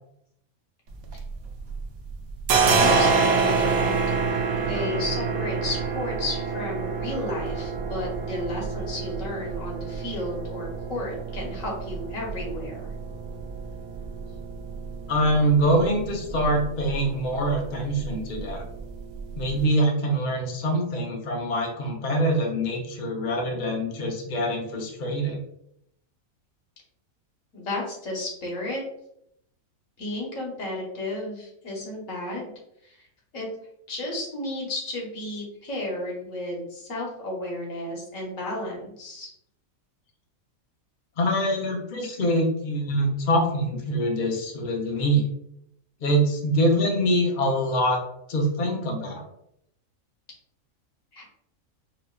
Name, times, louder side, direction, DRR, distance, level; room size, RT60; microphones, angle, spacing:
sound 1, 0.9-1.8 2.1-19.6, right 4 dB, 80° right, 1.0 m, -28 dB
voice 1, 2.8-4.0 4.5-12.9 27.5-28.8 30.0-32.5 32.8-33.0 33.3-33.5 33.9-39.3 51.1-51.2, left 2 dB, 70° left, -2 dB, 1.4 m, -33 dB
voice 2, 15.1-18.6 19.4-25.4 41.2-45.2 46.0-48.0 48.3-49.2, right 1 dB, 50° left, 1 dB, 0.6 m, -24 dB
4.8 x 2.4 x 2.2 m, 0.74 s
omnidirectional pair, 1.5 m